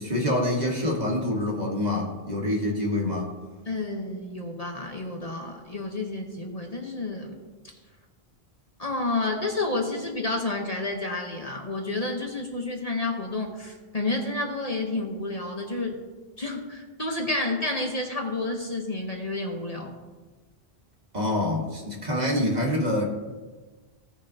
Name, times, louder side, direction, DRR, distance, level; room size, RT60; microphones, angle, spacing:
voice 1, 0.0-3.3 21.1-23.1, left 1 dB, 40° right, -1 dB, 1.6 m, -26 dB
voice 2, 3.7-7.3 8.8-16.0 16.4-19.9, left 2 dB, 35° left, 1 dB, 1.1 m, -30 dB
17.0 x 6.7 x 2.8 m, 1.3 s
omnidirectional pair, 1.1 m